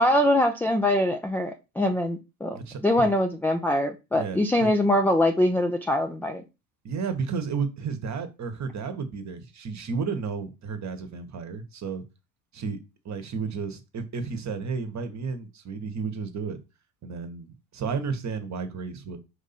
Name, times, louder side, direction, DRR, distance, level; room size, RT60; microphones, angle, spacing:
voice 1, 0.0-2.6 2.8-6.4, left 1 dB, 5° left, 0.4 m, -23 dB
voice 2, 2.5-3.1 4.1-4.7 6.8-12.0 12.5-12.8 13.0-16.6 17.0-19.2, right 5 dB, 35° right, 1.1 m, -32 dB
4.8 x 2.6 x 4.2 m
supercardioid pair, 85°, 49 cm